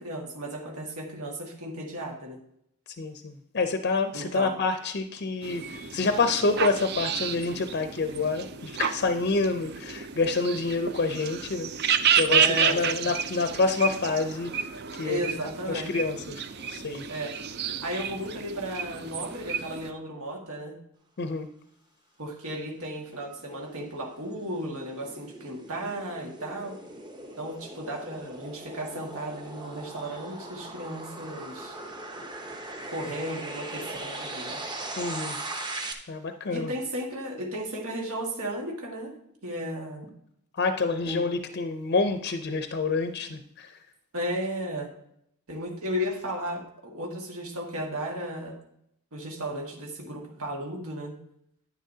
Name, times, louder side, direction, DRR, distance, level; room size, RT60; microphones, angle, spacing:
voice 1, 0.0-2.4 4.1-4.5 12.3-13.1 15.0-15.9 17.1-17.3 17.8-20.8 22.2-26.8 27.4-31.8 32.9-34.6 36.5-39.1 39.4-40.1 41.0-41.3 44.1-44.9 45.5-48.6 49.1-51.1, right 1 dB, 80° right, 0 dB, 1.7 m, -34 dB
voice 2, 3.0-14.7 14.9-15.4 15.7-17.0 21.2-21.5 35.0-35.4 36.1-36.7 40.5-43.7, left 3 dB, 50° left, 7 dB, 0.5 m, -28 dB
sound 1, 5.4-19.9, right 7 dB, 50° right, 0.5 m, -30 dB
sound 2, 22.7-35.9, right 2 dB, 20° right, 0.8 m, -40 dB
10.0 x 9.6 x 2.7 m, 0.73 s
head